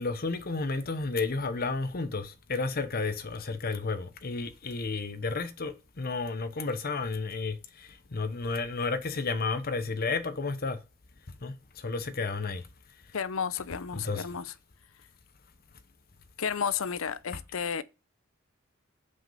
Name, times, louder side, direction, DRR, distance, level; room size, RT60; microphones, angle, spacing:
voice 1, 0.0-10.8 11.4-12.7 13.9-14.3, left 3 dB, 45° left, 0.9 m, -32 dB
voice 2, 13.1-14.5 16.4-17.8, left 6 dB, 75° left, 0.7 m, -32 dB
7.9 x 6.2 x 5.6 m
head